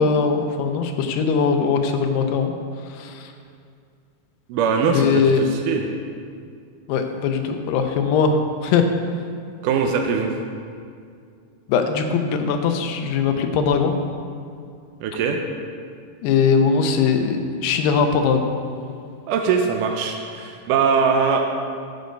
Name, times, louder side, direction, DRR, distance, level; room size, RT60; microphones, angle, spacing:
voice 1, 0.0-2.5 2.9-3.3 4.8-5.5 6.9-8.9 11.7-14.0 16.2-18.5, left 5 dB, 90° left, 6 dB, 2.9 m, -20 dB
voice 2, 4.5-5.8 9.6-10.3 15.0-15.4 19.3-21.4, right 5 dB, 80° right, 3 dB, 1.9 m, -21 dB
12.0 x 8.0 x 5.2 m, 2.3 s
omnidirectional pair, 4.6 m